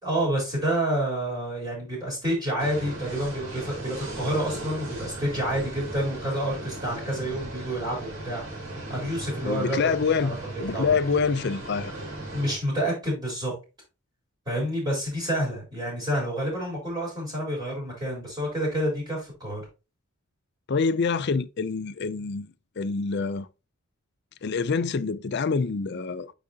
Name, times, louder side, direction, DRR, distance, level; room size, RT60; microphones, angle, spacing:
voice 1, 0.0-8.4 8.9-9.8 10.2-10.3 10.5-10.9 12.3-13.5 14.5-19.6, right 1 dB, 20° right, 3.7 m, -28 dB
sound 1, 2.6-12.6, right 2 dB, 60° right, 3.8 m, -37 dB
voice 2, 9.4-10.3 10.6-11.9 20.7-22.5 22.8-23.5 24.4-26.3, left 5 dB, 50° left, 0.5 m, -26 dB
8.6 x 4.8 x 2.8 m
head